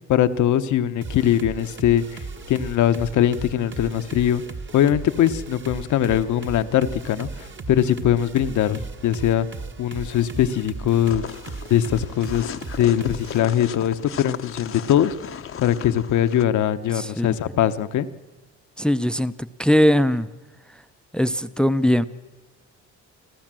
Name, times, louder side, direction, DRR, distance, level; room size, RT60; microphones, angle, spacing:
voice 1, 0.1-4.4 4.7-9.5 9.8-11.2 11.7-15.1 15.6-18.1, left 11 dB, 75° left, 12 dB, 1.0 m, -21 dB
sound 1, 1.0-13.4, right 3 dB, 40° right, 1.5 m, -37 dB
sound 2, 11.1-16.4, left 8 dB, 45° left, 0.8 m, -36 dB
voice 2, 16.9-17.3 18.8-20.3 21.1-22.1, equal, 5° left, 14 dB, 0.6 m, -20 dB
26.0 x 14.5 x 7.6 m, 1.2 s
cardioid pair, 90°, 30 cm